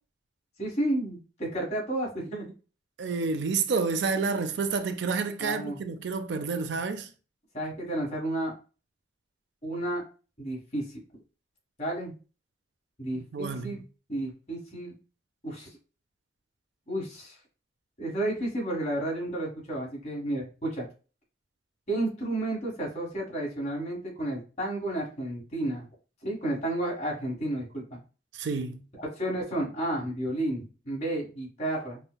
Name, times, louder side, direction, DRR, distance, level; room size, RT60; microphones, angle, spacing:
voice 1, 0.6-2.5 5.4-5.8 7.5-8.5 9.6-10.0 10.4-11.0 11.8-12.1 13.0-13.8 14.1-14.9 15.4-15.7 16.9-17.3 18.0-20.9 21.9-25.8 26.2-28.0 29.1-32.0, right 1 dB, 35° left, 1.5 m, -31 dB
voice 2, 3.0-7.1 13.1-13.8 28.3-28.8, right 4 dB, 70° right, 0.4 m, -29 dB
5.4 x 2.2 x 2.2 m
head